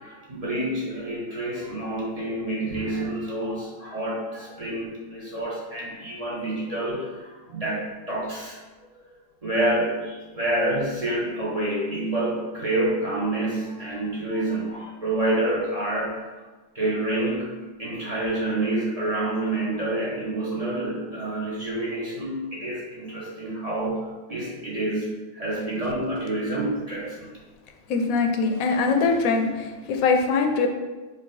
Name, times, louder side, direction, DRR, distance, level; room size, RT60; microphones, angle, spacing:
voice 1, 0.0-8.6 9.0-9.1 9.4-16.3 16.7-27.3, right 1 dB, 35° right, -6 dB, 0.7 m, -28 dB
voice 2, 27.9-30.7, left 4 dB, 85° left, 4 dB, 1.0 m, -22 dB
4.0 x 2.6 x 3.8 m, 1.2 s
omnidirectional pair, 1.4 m